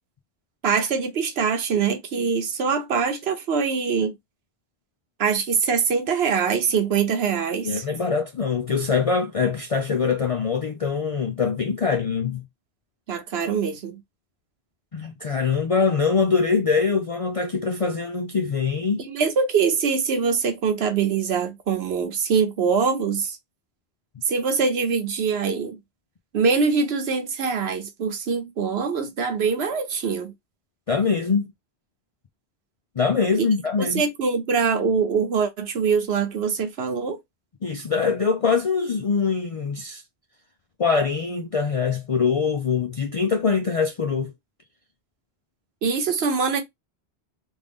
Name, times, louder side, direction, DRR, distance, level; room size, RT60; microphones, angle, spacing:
voice 1, 0.6-4.1 5.2-7.8 13.1-14.0 19.0-23.4 24.3-25.8 26.3-30.3 33.4-33.5 33.8-37.2 45.8-46.6, right 5 dB, 75° right, 1.1 m, -23 dB
voice 2, 7.6-12.4 14.9-19.0 30.9-31.5 33.0-34.0 37.6-40.0 40.8-44.3, left 5 dB, 55° left, 0.4 m, -23 dB
3.5 x 2.5 x 3.4 m
omnidirectional pair, 1.1 m